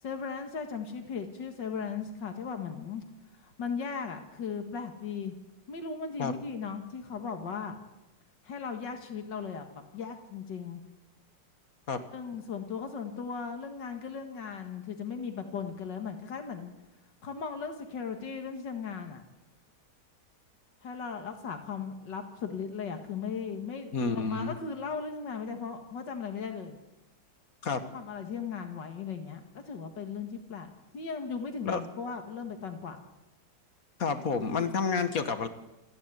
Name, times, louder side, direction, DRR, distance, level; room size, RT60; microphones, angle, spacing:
voice 1, 0.0-3.0 3.4-5.3 5.7-7.8 8.4-9.7 9.9-10.8 12.1-16.7 17.2-19.2 20.8-26.8 27.9-33.0, left 6 dB, 85° left, 6 dB, 2.3 m, -37 dB
voice 2, 23.9-24.5 27.6-27.8 31.7-31.8 34.0-35.5, left 5 dB, 55° left, 10 dB, 1.8 m, -29 dB
27.5 x 10.5 x 9.8 m, 0.96 s
omnidirectional pair, 1.9 m